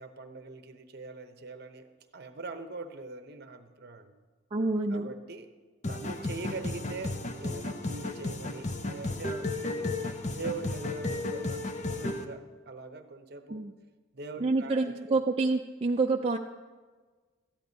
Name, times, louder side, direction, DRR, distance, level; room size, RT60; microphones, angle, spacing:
voice 1, 0.0-1.9 2.1-4.1 4.9-5.5 5.9-10.0 10.3-11.6 12.0-13.6 14.1-15.2, right 3 dB, 50° right, 7 dB, 0.9 m, -42 dB
voice 2, 4.5-5.1 13.5-13.7 14.4-16.4, right 3 dB, 30° right, 1 dB, 0.4 m, -27 dB
sound 1, 5.8-12.2, left 2 dB, 35° left, 0.7 m, -34 dB
14.0 x 10.5 x 4.0 m, 1.4 s
head